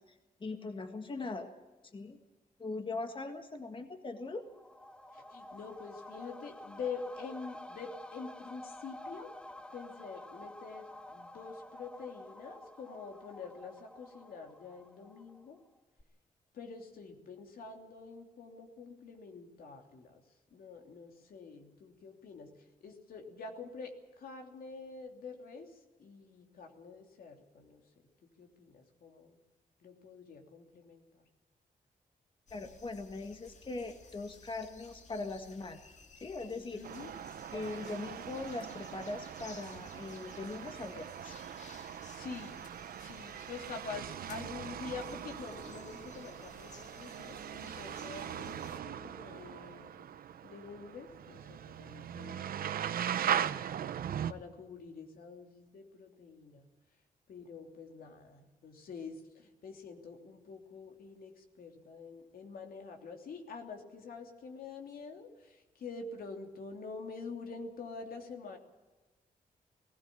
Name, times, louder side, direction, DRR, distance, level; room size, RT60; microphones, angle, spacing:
voice 1, 0.1-1.5 1.9-2.2 2.6-4.4 32.5-35.8 36.2-36.8 37.5-41.4, left 3 dB, 35° left, 6 dB, 1.7 m, -40 dB
sound 1, 4.2-15.7 16.0-16.1, left 1 dB, 5° left, 0.9 m, -50 dB
voice 2, 5.1-9.3 9.7-15.6 16.5-20.2 20.5-22.5 22.8-27.8 28.2-29.4 29.8-31.2 36.7-37.1 41.8-42.7 43.0-50.1 50.4-53.5 54.3-56.6 57.3-68.6, left 4 dB, 80° left, 4 dB, 3.0 m, -46 dB
sound 2, 32.5-48.8, left 4 dB, 50° left, 2.1 m, -57 dB
sound 3, 36.8-54.3, right 9 dB, 80° right, 0.8 m, -40 dB
19.0 x 16.5 x 8.6 m, 1.2 s
cardioid pair, 100°, 15 cm